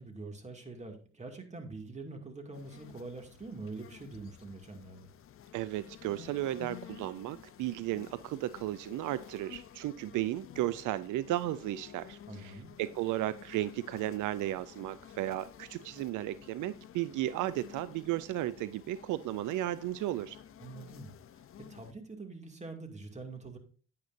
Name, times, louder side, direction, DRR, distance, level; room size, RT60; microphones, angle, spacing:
voice 1, 0.0-5.1 12.3-12.7 20.6-21.1 21.7-23.6, right 3 dB, 25° right, 4 dB, 2.3 m, -44 dB
sound 1, 2.5-21.9, left 10 dB, 45° left, 0.6 m, -52 dB
voice 2, 5.5-20.4, right 14 dB, 85° right, 16 dB, 0.5 m, -34 dB
9.6 x 9.4 x 2.6 m, 0.41 s
cardioid pair, 90°, 30 cm